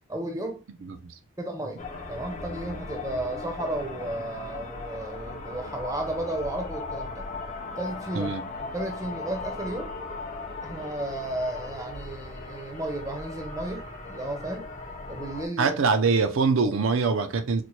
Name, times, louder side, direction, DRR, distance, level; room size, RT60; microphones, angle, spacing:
voice 1, 0.1-0.6 1.4-7.2 7.8-8.3 8.7-9.9 10.6-14.7 15.1-15.8, right 1 dB, 15° right, 0.5 m, -33 dB
voice 2, 0.8-1.2 8.1-8.4 15.6-17.6, right 4 dB, 65° right, 0.4 m, -24 dB
sound 1, 1.8-15.5, left 3 dB, 35° left, 0.5 m, -38 dB
4.1 x 2.1 x 3.0 m
head